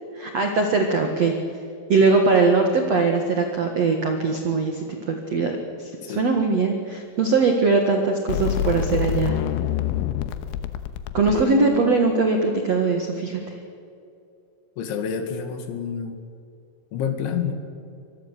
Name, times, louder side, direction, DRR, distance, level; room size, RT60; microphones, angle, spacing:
voice 1, 0.1-1.4 1.9-9.4 11.1-13.6, right 4 dB, 70° right, 4 dB, 1.6 m, -21 dB
sound 1, 8.3-11.5, left 10 dB, 90° left, 3.6 m, -26 dB
voice 2, 11.3-12.0 14.8-16.2 16.9-17.5, left 7 dB, 70° left, 7 dB, 4.0 m, -29 dB
25.0 x 20.5 x 8.3 m, 2.5 s
omnidirectional pair, 5.9 m